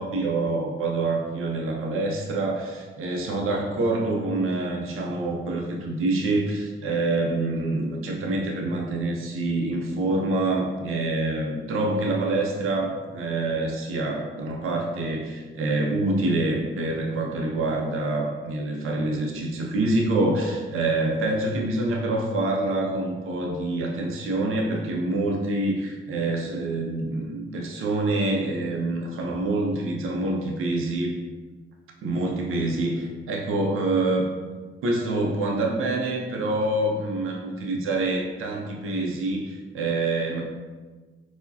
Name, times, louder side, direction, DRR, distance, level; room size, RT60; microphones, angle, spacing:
voice 1, 0.0-31.2 32.0-34.3 34.8-40.4, right 2 dB, 85° right, 0 dB, 0.5 m, -26 dB
4.5 x 2.1 x 2.7 m, 1.3 s
cardioid pair, 70°, 21 cm